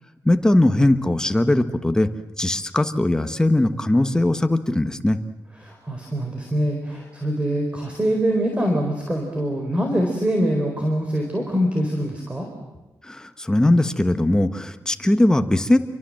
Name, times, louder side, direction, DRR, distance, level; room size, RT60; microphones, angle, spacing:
voice 1, 0.2-2.1 2.4-5.2 13.0-15.8, left 1 dB, 10° left, 8 dB, 1.3 m, -19 dB
voice 2, 5.6-12.5, equal, 15° right, 3 dB, 4.3 m, -24 dB
28.0 x 24.0 x 7.7 m, 1.1 s
wide cardioid pair, 120°, 7 cm